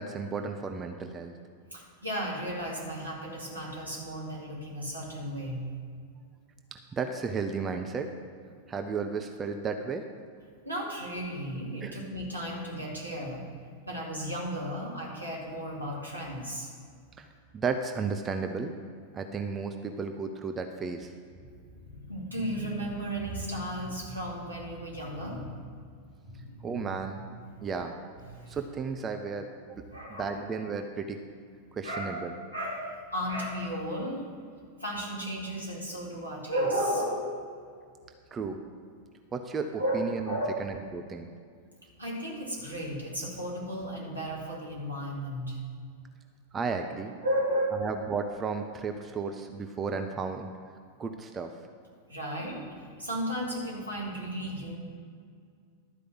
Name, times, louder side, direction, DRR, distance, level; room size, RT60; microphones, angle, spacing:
voice 1, 0.0-1.3 6.9-8.1 8.7-10.1 11.8-12.0 17.2-17.3 17.5-18.7 19.1-21.1 26.6-27.2 27.6-27.9 28.5-31.2 31.7-32.3 38.3-38.6 39.3-41.3 46.5-47.1 47.8-50.5 51.0-51.5, right 5 dB, 20° right, 5 dB, 0.7 m, -33 dB
voice 2, 1.7-5.8 10.6-13.5 13.8-16.7 21.7-25.7 26.2-27.2 28.3-28.6 29.9-30.4 31.8-32.2 32.5-34.3 34.8-37.4 39.8-40.7 42.0-45.6 47.2-47.9 52.1-54.8, equal, 85° right, -4 dB, 2.4 m, -34 dB
12.0 x 5.0 x 7.7 m, 2.1 s
figure-of-eight pair, 90°, 0 cm